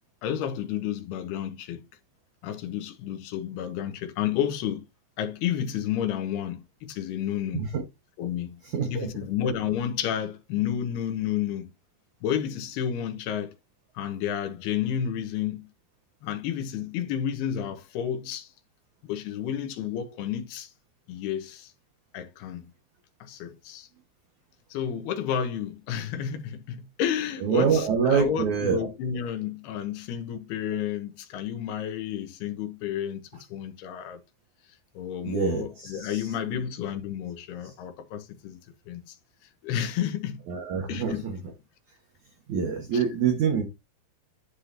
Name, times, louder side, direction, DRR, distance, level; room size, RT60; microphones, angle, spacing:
voice 1, 0.2-1.8 2.4-4.9 5.2-7.6 8.2-8.6 8.9-11.7 12.2-13.5 13.9-15.7 16.2-18.5 19.0-20.7 21.1-21.7 22.1-22.7 23.2-23.9 24.7-33.2 33.5-34.2 34.9-38.6 38.9-39.2 39.6-40.4 40.9-41.3 42.9-43.1, left 9 dB, 75° left, 2.8 m, -31 dB
voice 2, 8.7-9.1 27.4-28.9 35.2-36.3 40.5-41.4 42.5-43.6, right 6 dB, 60° right, 2.2 m, -26 dB
11.5 x 4.8 x 2.8 m
omnidirectional pair, 5.2 m